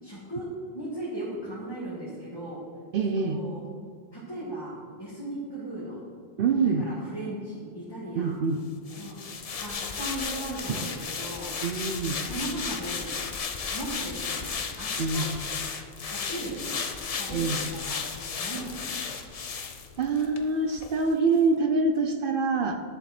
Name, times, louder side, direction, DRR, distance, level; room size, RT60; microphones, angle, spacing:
voice 1, 0.0-0.5 0.7-2.6 3.0-3.6 4.1-6.0 6.6-8.4 9.0-9.2 9.5-11.5 12.2-13.1 13.7-14.5 14.8-15.3 16.1-16.8 17.2-18.0 18.4-19.2, right 1 dB, 25° left, -8 dB, 1.9 m, -37 dB
voice 2, 2.9-3.4 6.4-6.9 8.2-8.6 8.9-9.0 10.7-10.8 11.6-12.2 15.0-15.3 17.3-17.6 20.0-22.8, right 4 dB, 65° right, 6 dB, 0.7 m, -25 dB
sound 1, 8.9-20.4 20.8-20.9, left 5 dB, 45° left, 0.6 m, -34 dB
10.5 x 7.3 x 4.3 m, 2.1 s
omnidirectional pair, 1.1 m